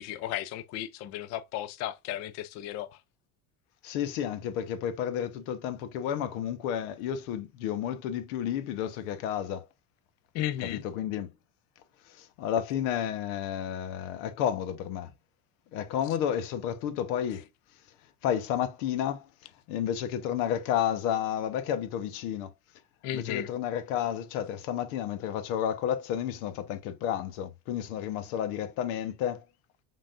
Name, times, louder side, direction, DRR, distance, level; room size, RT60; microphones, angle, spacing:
voice 1, 0.0-3.0 10.3-10.8 23.0-23.5, left 12 dB, 40° left, 0.4 m, -34 dB
voice 2, 3.8-9.7 10.6-11.3 12.1-15.1 15.7-17.5 18.2-19.3 19.7-22.5 23.1-29.4, left 9 dB, 90° left, 1.0 m, -31 dB
5.6 x 3.6 x 2.4 m
cardioid pair, 160°, 42 cm